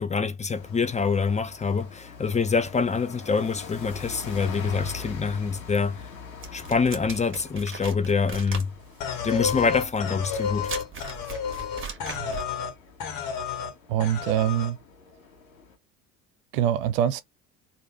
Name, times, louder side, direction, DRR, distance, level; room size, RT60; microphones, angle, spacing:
voice 1, 0.0-6.0 6.5-8.7 9.2-10.7, left 5 dB, 15° left, 0.6 m, -25 dB
sound 1, 0.5-15.8, left 5 dB, 85° left, 1.4 m, -44 dB
sound 2, 6.4-12.5, right 5 dB, 30° right, 1.2 m, -39 dB
sound 3, 9.0-12.7 13.0-13.7 14.0-14.7, left 7 dB, 55° left, 1.5 m, -31 dB
voice 2, 13.9-14.8 16.5-17.2, right 11 dB, 70° right, 0.6 m, -24 dB
3.3 x 2.6 x 2.9 m
hypercardioid pair, 65°, 41 cm